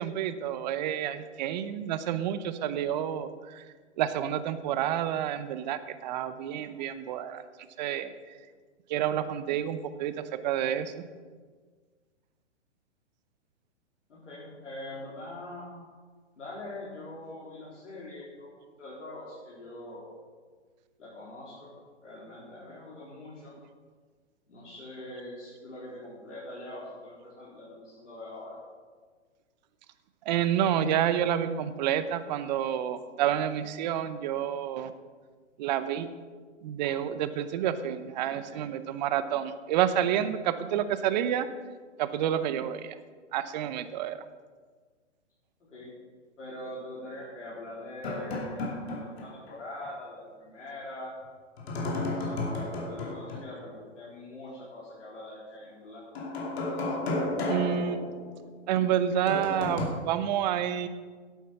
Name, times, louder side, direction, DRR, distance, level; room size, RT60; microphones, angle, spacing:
voice 1, 0.0-3.6 4.0-7.4 7.8-8.1 8.9-10.9 30.2-34.9 35.6-36.1 36.6-41.5 42.0-42.9 43.3-44.2 57.5-58.0 58.7-60.9, right 10 dB, 35° right, 12 dB, 0.7 m, -29 dB
voice 2, 14.1-15.7 16.4-18.5 18.8-20.1 21.0-21.7 22.0-23.5 24.5-28.6 38.5-38.7 45.6-46.0 46.4-51.1 52.1-56.0, left 1 dB, 80° left, -7 dB, 3.9 m, -43 dB
sound 1, 48.0-49.5 49.8-49.9 51.6-53.6 56.2-58.6 59.3-59.9, left 2 dB, 55° left, 2.7 m, -33 dB
11.0 x 8.4 x 5.7 m, 1.5 s
hypercardioid pair, 135°, 36 cm